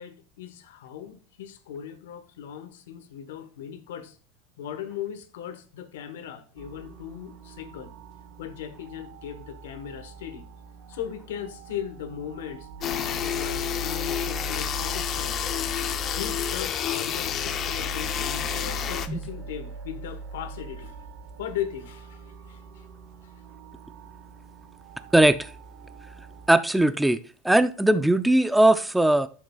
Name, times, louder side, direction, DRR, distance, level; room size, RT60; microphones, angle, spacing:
voice 1, 0.0-4.2 4.6-7.9 8.4-10.5 10.9-15.4 16.2-21.1 21.4-22.8 23.2-23.3, left 9 dB, 90° left, 1.1 m, -38 dB
sound 1, 6.6-26.5, right 4 dB, 50° right, 1.2 m, -41 dB
sound 2, 12.8-19.1, left 9 dB, 35° left, 0.7 m, -29 dB
voice 2, 25.1-25.5 26.5-27.2 27.4-29.3, right 1 dB, 5° right, 0.5 m, -19 dB
12.0 x 6.6 x 2.3 m
supercardioid pair, 130°, 0 cm